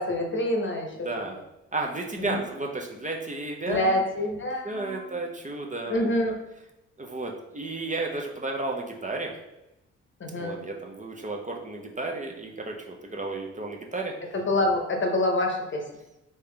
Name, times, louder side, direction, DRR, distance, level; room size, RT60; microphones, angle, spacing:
voice 1, 0.0-1.1 2.2-2.4 3.7-5.1 5.9-6.3 10.2-10.6 14.3-15.8, left 1 dB, 35° left, 2 dB, 0.9 m, -26 dB
voice 2, 0.9-1.4 1.7-4.0 4.6-6.1 7.0-9.3 10.3-14.1, right 2 dB, 20° right, 0 dB, 0.7 m, -33 dB
3.4 x 2.9 x 3.3 m, 0.92 s
hypercardioid pair, 45°, 34 cm